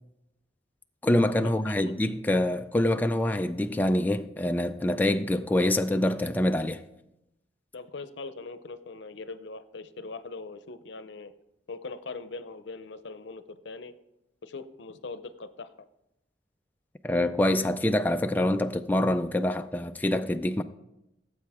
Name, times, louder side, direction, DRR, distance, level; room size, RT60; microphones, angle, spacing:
voice 1, 1.0-6.8 17.0-20.6, left 1 dB, 10° left, 0.3 m, -25 dB
voice 2, 7.7-11.3 11.7-13.9 14.4-15.7, left 3 dB, 80° left, 0.7 m, -41 dB
17.0 x 7.8 x 3.5 m
head